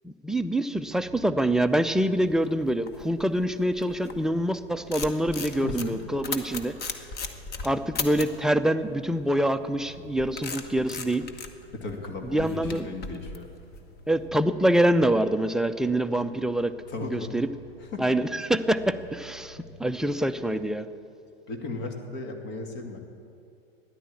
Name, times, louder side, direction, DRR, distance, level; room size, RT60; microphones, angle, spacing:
voice 1, 0.0-6.8 7.6-11.3 12.3-12.9 14.1-16.8 17.1-17.5 18.0-20.9, right 1 dB, ahead, 8 dB, 0.4 m, -25 dB
sound 1, 0.7-20.6, left 1 dB, 85° left, 4.6 m, -52 dB
sound 2, 2.0-4.3 4.7-8.4 9.7-14.2, left 4 dB, 30° left, 1.3 m, -37 dB
voice 2, 5.6-6.0 11.7-13.5 16.9-17.3 17.8-18.0 21.5-23.1, left 3 dB, 50° left, 4 dB, 2.5 m, -36 dB
14.0 x 10.5 x 8.5 m, 2.5 s
hypercardioid pair, 95°, 30 cm